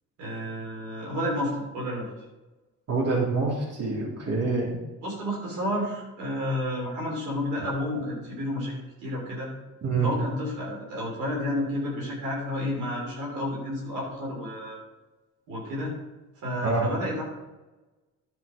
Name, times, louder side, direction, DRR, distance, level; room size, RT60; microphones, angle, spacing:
voice 1, 0.2-2.1 5.0-9.5 10.0-14.8 15.5-16.0 16.4-17.2, left 1 dB, 90° right, -2 dB, 3.3 m, -31 dB
voice 2, 2.9-4.7 9.8-10.1 16.6-16.8, right 4 dB, 55° right, -3 dB, 3.2 m, -26 dB
11.0 x 5.6 x 5.0 m, 1.1 s
cardioid pair, 90°, 30 cm